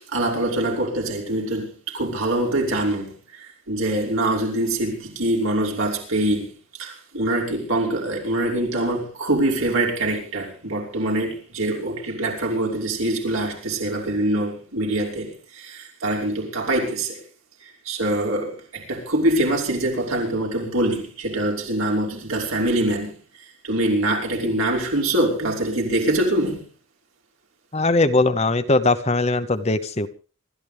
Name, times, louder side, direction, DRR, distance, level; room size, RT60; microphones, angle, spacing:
voice 1, 0.0-6.5 6.8-17.2 17.6-23.1 23.6-26.6, right 1 dB, 80° right, 5.7 m, -24 dB
voice 2, 27.7-30.1, left 2 dB, 30° left, 0.9 m, -20 dB
26.0 x 13.5 x 3.5 m
head